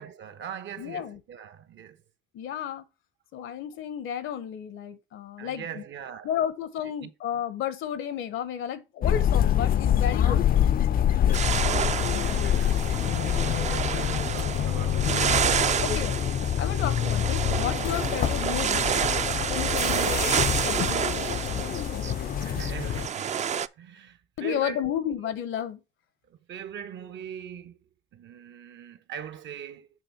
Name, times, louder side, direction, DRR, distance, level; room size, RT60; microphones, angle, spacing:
voice 1, 0.0-2.0 5.4-6.3 6.8-7.1 10.2-10.5 11.0-11.3 12.0-12.9 13.6-15.6 17.9-18.1 22.4-25.1 26.3-27.8 28.1-29.9, right 8 dB, 70° right, 0.9 m, -41 dB
voice 2, 0.8-1.2 2.3-2.8 3.3-5.8 6.2-10.5 12.0-12.5 15.8-16.1 16.6-19.0 19.5-21.1 24.4-25.8, left 9 dB, 85° left, 1.0 m, -32 dB
sound 1, 9.0-23.1, left 10 dB, 45° left, 0.4 m, -26 dB
sound 2, 11.3-23.7, right 8 dB, 35° right, 0.4 m, -29 dB
7.6 x 3.5 x 5.8 m
cardioid pair, 90°, 20 cm